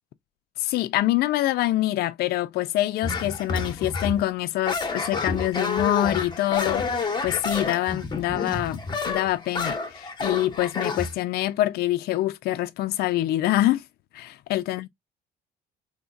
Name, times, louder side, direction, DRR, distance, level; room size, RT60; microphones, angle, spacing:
voice 1, 0.6-13.8 14.1-14.9, left 15 dB, 65° left, 0.4 m, -25 dB
sound 1, 3.0-4.2 4.7-11.1, left 4 dB, 25° left, 0.9 m, -29 dB
3.8 x 2.9 x 2.3 m
cardioid pair, 110°, 17 cm